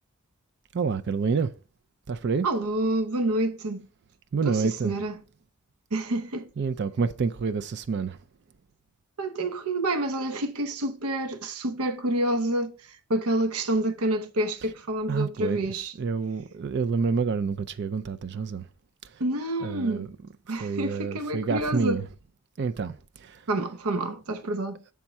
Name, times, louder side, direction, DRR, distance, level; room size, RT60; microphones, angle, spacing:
voice 1, 0.7-1.5 2.1-2.5 4.3-5.0 6.6-8.2 15.1-18.6 19.6-20.1 20.6-22.0 22.6-23.4, right 5 dB, 50° right, 0.4 m, -28 dB
voice 2, 2.4-3.9 4.4-5.1 5.9-6.5 9.2-12.7 13.1-15.9 19.2-20.1 20.5-22.0 23.5-24.8, right 1 dB, 80° right, 0.8 m, -28 dB
7.4 x 3.5 x 4.2 m
head